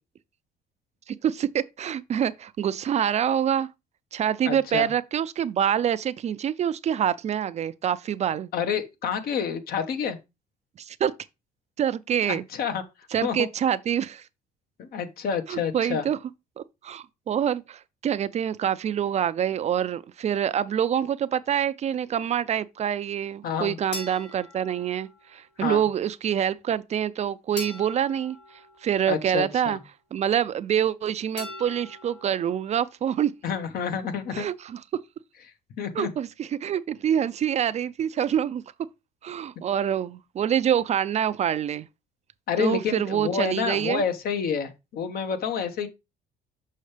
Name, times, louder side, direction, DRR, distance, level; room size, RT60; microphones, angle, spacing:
voice 1, 1.1-3.7 4.1-8.5 10.8-11.1 11.8-12.4 13.1-14.3 15.5-16.2 16.6-28.4 28.8-29.8 30.1-33.3 34.3-34.8 35.9-38.6 39.2-41.9 42.6-44.0, right 9 dB, 40° right, 0.4 m, -26 dB
voice 2, 4.4-4.9 8.5-10.2 12.2-12.8 13.2-13.3 14.8-16.0 23.4-23.8 25.6-25.8 29.1-29.8 33.4-34.4 35.8-36.1 42.5-45.9, left 6 dB, 65° left, 1.2 m, -28 dB
sound 1, 23.9-25.4 27.6-29.4 31.4-32.5, left 3 dB, 90° left, 3.4 m, -41 dB
6.5 x 5.6 x 3.3 m
cardioid pair, 110°, 17 cm